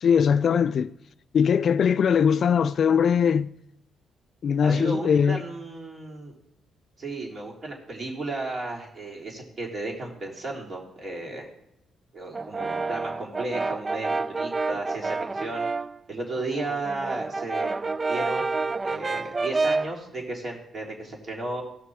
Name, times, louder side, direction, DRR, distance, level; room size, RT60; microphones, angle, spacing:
voice 1, 0.0-0.9 1.3-3.5 4.4-5.4, left 7 dB, 55° left, 0.3 m, -21 dB
voice 2, 4.6-6.3 7.0-11.5 12.1-15.7 16.1-21.6, right 2 dB, 45° right, 3.5 m, -34 dB
Brass instrument, 12.3-16.0 16.4-20.0, right 3 dB, 25° right, 0.3 m, -29 dB
17.0 x 6.0 x 4.8 m
cardioid pair, 90°, 0 cm